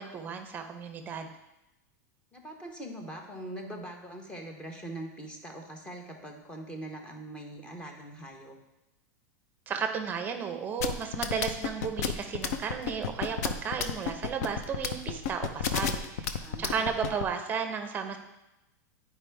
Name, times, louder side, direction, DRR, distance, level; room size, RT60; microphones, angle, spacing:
voice 1, 0.0-1.3 9.7-18.2, right 6 dB, 20° right, 6 dB, 0.6 m, -34 dB
voice 2, 2.3-8.6 16.4-16.9, right 1 dB, 10° left, 3 dB, 0.9 m, -42 dB
sound 1, 10.8-17.2, left 7 dB, 65° left, 0.6 m, -30 dB
9.7 x 4.7 x 3.4 m, 0.95 s
supercardioid pair, 155°, 9 cm